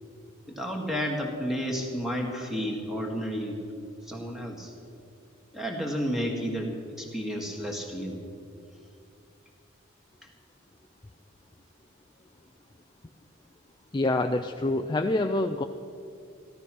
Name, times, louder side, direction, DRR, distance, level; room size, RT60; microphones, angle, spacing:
voice 1, 0.5-4.7 5.5-8.2, equal, ahead, 0 dB, 1.7 m, -32 dB
voice 2, 13.9-15.6, left 2 dB, 20° left, 6 dB, 0.4 m, -26 dB
15.0 x 12.5 x 6.1 m, 2.5 s
head